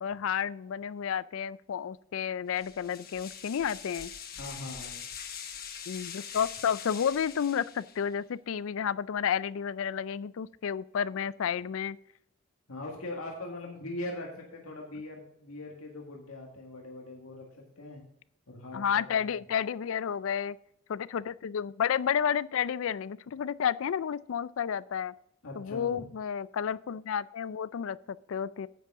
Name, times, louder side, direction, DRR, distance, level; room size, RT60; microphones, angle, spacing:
voice 1, 0.0-4.1 5.9-12.0 18.7-20.6 20.9-25.1 25.6-28.7, left 8 dB, 65° left, 19 dB, 0.4 m, -31 dB
sound 1, 2.5-8.1, left 8 dB, 45° left, 1.2 m, -43 dB
voice 2, 4.4-5.0 12.7-18.0 18.5-19.2 25.4-26.1, left 2 dB, 85° left, -1 dB, 1.8 m, -41 dB
10.0 x 8.3 x 3.6 m, 0.74 s
head